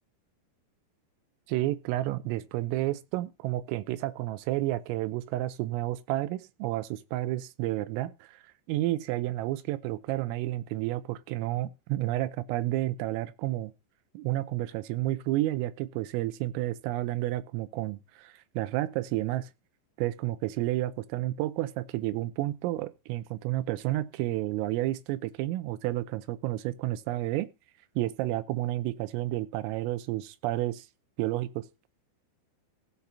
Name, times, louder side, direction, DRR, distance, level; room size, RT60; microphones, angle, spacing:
voice 1, 1.5-8.4 8.7-13.7 14.2-19.5 20.0-27.5 28.0-30.9 31.2-31.7, right 16 dB, 85° right, 3.4 m, -31 dB
16.0 x 5.8 x 5.6 m
omnidirectional pair, 5.8 m